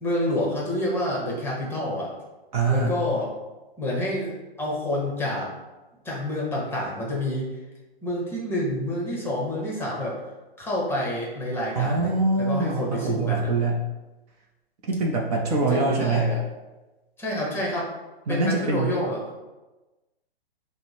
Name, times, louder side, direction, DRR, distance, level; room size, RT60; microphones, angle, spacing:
voice 1, 0.0-2.1 2.7-3.3 3.8-4.3 4.6-5.5 6.0-7.5 8.0-10.2 10.6-13.5 15.5-16.5 17.2-17.9 18.3-19.2, left 1 dB, 5° left, -3 dB, 0.9 m, -28 dB
voice 2, 2.5-3.0 11.8-13.8 14.8-16.3 18.3-18.9, right 3 dB, 40° right, 0 dB, 0.6 m, -24 dB
5.8 x 2.1 x 3.4 m, 1.1 s
hypercardioid pair, 130°, 31 cm